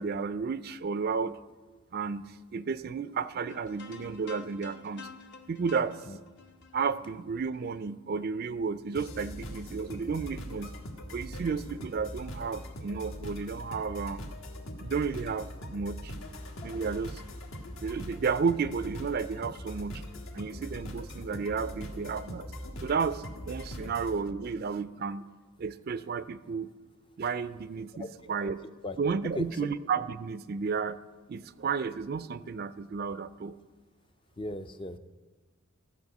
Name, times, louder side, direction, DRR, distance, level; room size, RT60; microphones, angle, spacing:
voice 1, 0.0-1.4 1.9-5.1 5.5-6.0 6.7-10.7 11.1-14.2 14.8-16.1 16.6-17.2 17.8-20.0 20.3-22.4 22.8-25.3 25.6-26.7 27.2-28.6 29.0-31.0 31.3-33.5, right 5 dB, 45° right, 14 dB, 0.4 m, -32 dB
sound 1, 3.5-7.8, left 5 dB, 55° left, 0.8 m, -49 dB
sound 2, 8.9-24.2, equal, 70° left, 1.4 m, -42 dB
voice 2, 34.4-35.0, left 1 dB, 25° left, 10 dB, 0.4 m, -37 dB
14.0 x 5.5 x 7.8 m, 1.3 s
head